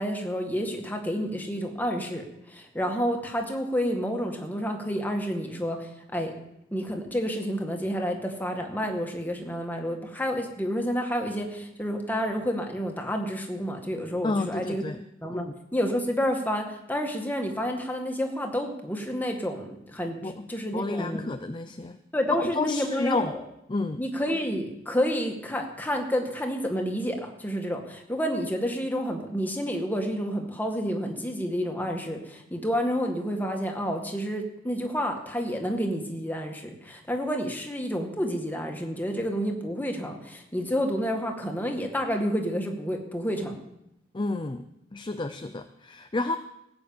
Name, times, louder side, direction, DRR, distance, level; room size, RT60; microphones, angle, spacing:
voice 1, 0.0-6.3 6.7-14.8 15.2-21.3 22.1-23.2 24.0-43.6, equal, 10° left, 2 dB, 2.0 m, -29 dB
voice 2, 14.2-15.0 15.3-15.5 20.2-20.5 20.7-22.0 22.4-23.3 23.7-24.1 44.1-46.4, left 2 dB, 25° left, 9 dB, 0.6 m, -30 dB
18.0 x 7.0 x 8.8 m, 0.83 s
head